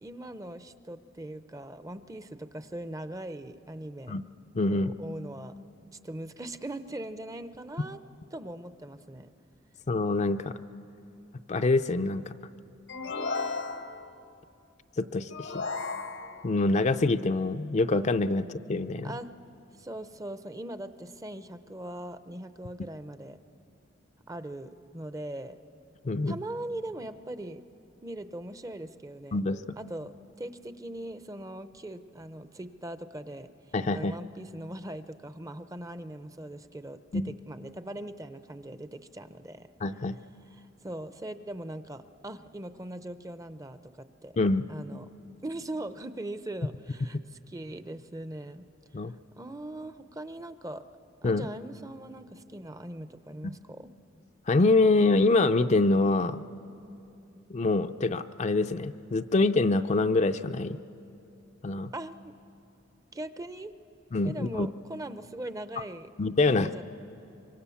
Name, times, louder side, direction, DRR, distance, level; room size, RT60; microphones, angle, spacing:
voice 1, 0.0-4.2 4.7-5.6 6.0-8.0 8.3-9.3 19.0-19.3 19.8-23.4 24.3-25.6 26.3-27.6 28.0-29.4 29.8-33.5 33.9-39.7 40.5-44.4 44.7-45.1 45.4-48.6 49.4-50.8 51.2-53.9 61.9-62.3 63.1-63.7 64.2-66.1 66.4-66.8, right 1 dB, 20° right, 12 dB, 0.6 m, -40 dB
voice 2, 4.5-4.9 9.9-10.6 11.5-12.3 15.0-15.6 16.4-19.1 26.0-26.4 29.3-29.6 33.7-34.2 37.1-37.3 39.8-40.2 44.4-44.7 48.9-49.1 51.2-51.5 54.5-56.4 57.5-60.8 61.6-61.9 64.1-64.7 66.2-66.7, left 3 dB, 40° left, 9 dB, 0.5 m, -25 dB
sound 1, 12.9-14.2 15.3-16.6, left 4 dB, 75° left, 1.0 m, -35 dB
25.0 x 24.0 x 7.1 m, 2.7 s
head